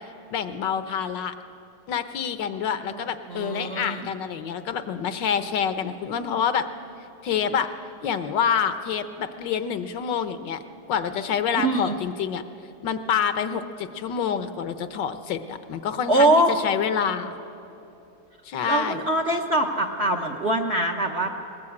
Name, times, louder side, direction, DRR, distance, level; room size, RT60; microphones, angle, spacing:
voice 1, 0.3-1.3 1.9-6.6 7.2-7.7 8.0-10.6 10.9-12.4 12.8-17.4 18.4-19.0, left 7 dB, 65° left, 10 dB, 1.5 m, -27 dB
voice 2, 3.3-4.1 11.6-12.0 16.1-16.5 18.7-21.3, right 1 dB, 45° right, 4 dB, 1.0 m, -23 dB
20.0 x 20.0 x 8.7 m, 2.9 s
omnidirectional pair, 2.2 m